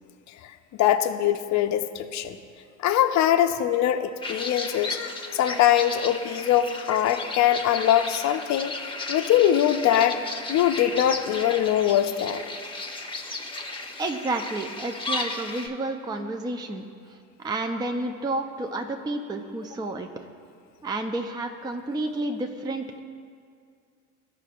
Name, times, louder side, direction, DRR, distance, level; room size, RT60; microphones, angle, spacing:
voice 1, 0.8-2.4 2.8-5.0 5.3-10.2 10.5-12.4, left 11 dB, 45° left, 9 dB, 0.6 m, -22 dB
sound 1, 4.2-15.7, left 2 dB, 10° left, 0.9 m, -34 dB
voice 2, 14.0-16.8 17.4-20.3 20.8-23.0, right 2 dB, 10° right, 5 dB, 0.5 m, -30 dB
14.5 x 5.8 x 2.5 m, 2.2 s
hypercardioid pair, 75°, 40 cm